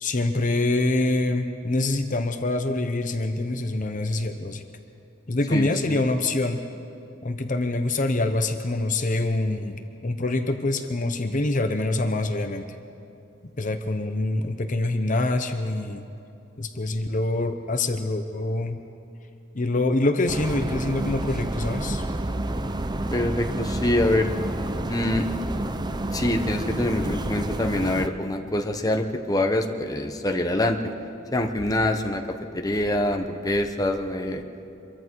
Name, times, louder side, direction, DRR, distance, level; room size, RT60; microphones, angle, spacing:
voice 1, 0.0-4.6 5.3-6.6 7.2-12.7 13.6-16.1 16.6-18.8 19.5-22.0, left 2 dB, 40° left, 7 dB, 1.0 m, -25 dB
voice 2, 5.5-6.1 23.1-24.3 24.9-25.3 26.1-30.8 31.3-32.2 32.5-34.4, left 1 dB, 20° left, 4 dB, 1.1 m, -25 dB
sound 1, 20.3-28.1, right 1 dB, 20° right, 0.7 m, -29 dB
25.5 x 23.0 x 4.7 m, 2.7 s
head